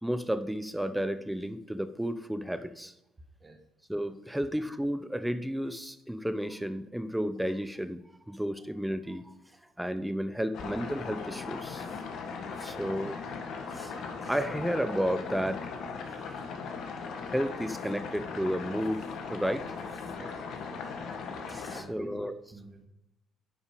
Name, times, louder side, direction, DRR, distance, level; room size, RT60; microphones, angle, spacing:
voice 1, 0.0-2.9 3.9-8.0 8.3-9.3 9.8-11.8 12.6-13.3 13.6-15.7 16.2-16.4 16.7-19.6 21.5-22.3, equal, 5° right, 11 dB, 0.9 m, -32 dB
sound 1, 10.5-21.8, left 5 dB, 65° left, 1.5 m, -39 dB
voice 2, 20.2-20.9 21.7-22.9, right 3 dB, 25° right, 4 dB, 1.5 m, -49 dB
10.0 x 5.2 x 5.0 m, 0.86 s
supercardioid pair, 65°, 0 cm